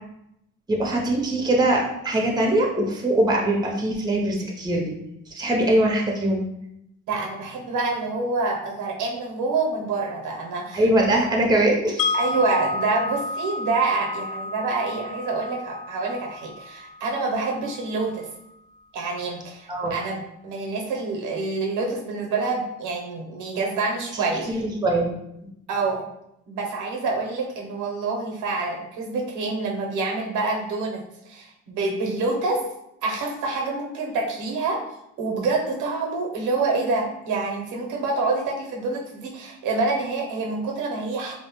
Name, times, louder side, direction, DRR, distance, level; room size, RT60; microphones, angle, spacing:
voice 1, 0.7-5.0 5.3-6.4 10.7-12.2 19.7-20.0 24.1-25.1, right 1 dB, 15° right, -1 dB, 0.6 m, -22 dB
voice 2, 7.1-10.8 12.1-18.3 18.9-24.5 25.7-26.0 26.5-32.6 33.0-41.3, right 3 dB, 85° right, 0 dB, 0.7 m, -27 dB
Wind chime, 12.0-18.0, left 3 dB, 80° left, 0.5 m, -31 dB
2.7 x 2.0 x 3.0 m, 0.80 s
cardioid pair, 90°, 30 cm